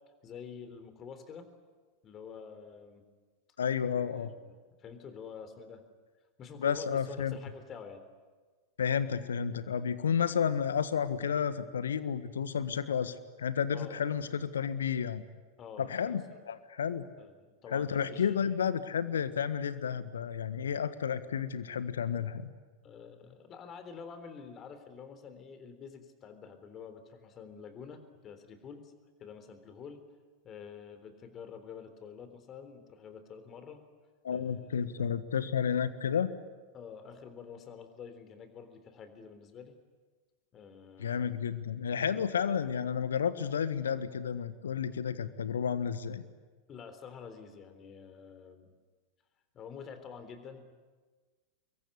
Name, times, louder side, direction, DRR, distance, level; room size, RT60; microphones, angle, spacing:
voice 1, 0.2-1.5 2.0-3.0 3.9-5.8 6.4-8.0 13.7-14.0 15.6-16.2 17.2-18.6 22.8-28.9 29.2-30.0 30.4-33.8 34.3-34.9 36.7-39.7 40.5-41.5 46.7-48.7 49.5-50.7, left 6 dB, 30° left, 9 dB, 3.7 m, -48 dB
voice 2, 3.6-4.3 6.6-7.4 8.8-15.2 15.8-17.0 17.7-22.5 34.2-36.3 41.0-46.2, left 7 dB, 70° left, 13 dB, 1.5 m, -31 dB
26.0 x 22.5 x 10.0 m, 1.4 s
figure-of-eight pair, 90°, 0 cm